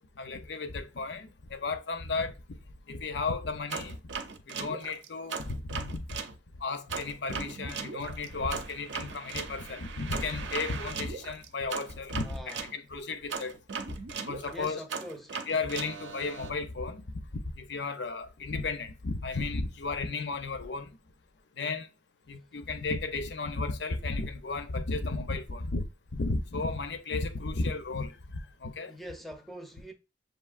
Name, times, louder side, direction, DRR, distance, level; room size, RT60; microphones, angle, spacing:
voice 1, 0.2-2.6 2.9-4.0 4.5-6.2 6.6-13.6 13.9-14.0 14.3-14.8 15.5-17.2 17.5-20.9 21.6-21.9 22.3-25.9 26.1-28.9, left 3 dB, 65° left, 0.6 m, -34 dB
sound 1, 3.7-6.3 6.9-12.7 13.3-16.5, right 5 dB, 75° right, 0.6 m, -38 dB
voice 2, 12.2-12.7 14.5-15.4 28.9-29.9, equal, ahead, 0.5 m, -43 dB
6.8 x 2.7 x 2.4 m
head